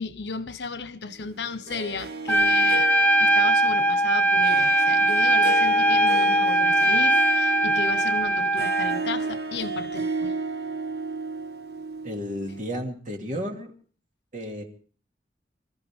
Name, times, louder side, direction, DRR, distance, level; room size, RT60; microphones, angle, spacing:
voice 1, 0.0-2.9 3.2-10.3, left 4 dB, 85° left, 1.1 m, -34 dB
Harp, 1.7-12.8, right 3 dB, 65° right, 1.0 m, -34 dB
Trumpet, 2.3-9.0, right 1 dB, 10° left, 0.9 m, -20 dB
voice 2, 12.0-13.7 14.3-14.6, equal, 45° right, 2.7 m, -32 dB
27.0 x 14.0 x 3.7 m
head